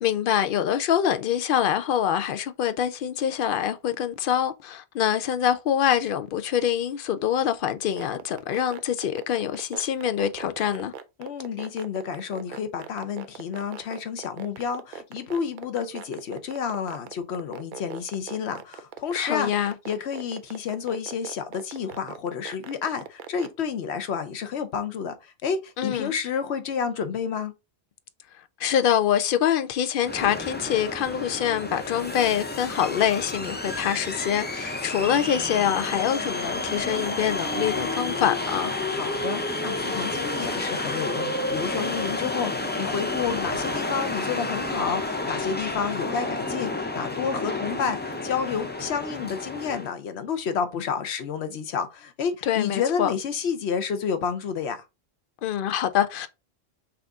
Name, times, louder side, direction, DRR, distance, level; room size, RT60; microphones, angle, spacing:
voice 1, 0.0-10.9 19.2-19.8 25.8-26.1 28.6-38.7 52.4-53.1 55.4-56.3, left 9 dB, 65° left, 0.7 m, -25 dB
sound 1, 7.8-23.5, right 8 dB, 60° right, 0.6 m, -38 dB
voice 2, 11.2-19.5 19.9-27.5 38.9-54.8, left 6 dB, 90° left, 1.0 m, -30 dB
sound 2, 30.0-49.9, left 2 dB, 15° left, 0.3 m, -30 dB
5.8 x 2.5 x 3.6 m
omnidirectional pair, 1.1 m